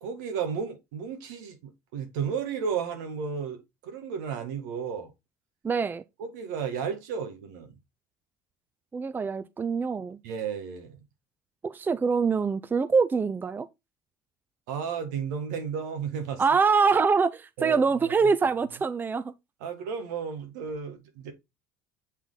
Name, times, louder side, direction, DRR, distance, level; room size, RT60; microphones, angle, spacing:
voice 1, 0.0-5.1 6.2-7.7 10.2-11.0 14.7-16.4 17.6-18.2 19.6-21.3, right 6 dB, 85° right, 1.8 m, -33 dB
voice 2, 5.6-6.0 8.9-10.2 11.6-13.7 16.4-19.3, right 5 dB, 20° right, 0.5 m, -24 dB
7.4 x 3.6 x 4.0 m
supercardioid pair, 90°, 9 cm